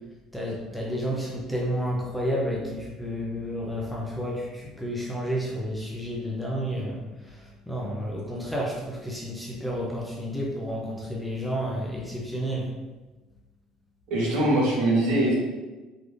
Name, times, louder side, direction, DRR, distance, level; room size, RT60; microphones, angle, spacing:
voice 1, 0.3-12.7, equal, ahead, -4 dB, 0.7 m, -31 dB
voice 2, 14.1-15.3, right 1 dB, 85° right, -3 dB, 1.4 m, -22 dB
3.9 x 3.4 x 3.4 m, 1.2 s
cardioid pair, 125°, 0 cm